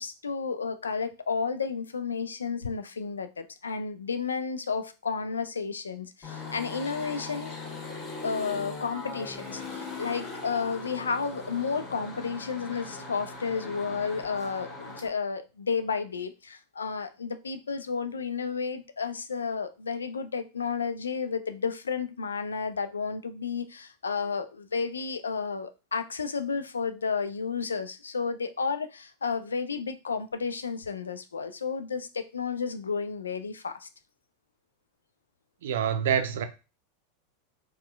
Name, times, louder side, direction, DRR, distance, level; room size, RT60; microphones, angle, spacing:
voice 1, 0.0-7.6 8.2-33.9, left 5 dB, 80° left, 0.3 m, -32 dB
sound 1, 6.2-15.1, left 3 dB, 35° left, 1.4 m, -40 dB
voice 2, 35.6-36.5, right 8 dB, 65° right, 0.5 m, -26 dB
4.1 x 2.2 x 2.3 m
figure-of-eight pair, 90°, 0 cm